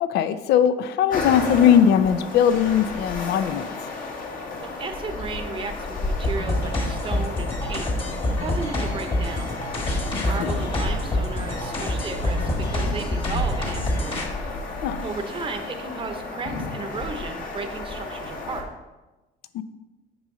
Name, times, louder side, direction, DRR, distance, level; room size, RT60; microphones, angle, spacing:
voice 1, 0.0-3.7 10.1-10.5 14.8-15.0 19.5-19.6, left 9 dB, 75° left, 12 dB, 0.5 m, -20 dB
sound 1, 1.1-18.6, left 2 dB, 55° left, 1.4 m, -32 dB
voice 2, 4.3-9.6 10.2-14.3 15.0-18.7, right 4 dB, 30° right, 6 dB, 0.8 m, -34 dB
sound 2, 6.2-14.2, left 1 dB, 30° left, 1.6 m, -27 dB
7.8 x 5.5 x 3.8 m, 1.1 s
cardioid pair, 110°, 17 cm